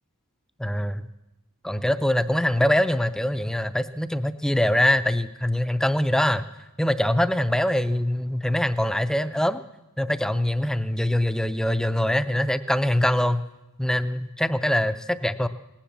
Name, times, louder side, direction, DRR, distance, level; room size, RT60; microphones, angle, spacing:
voice 1, 0.6-1.0 1.6-6.4 6.8-9.6 10.0-13.4 13.8-15.5, left 1 dB, 5° left, 12 dB, 0.4 m, -23 dB
18.0 x 10.0 x 7.3 m, 0.98 s
head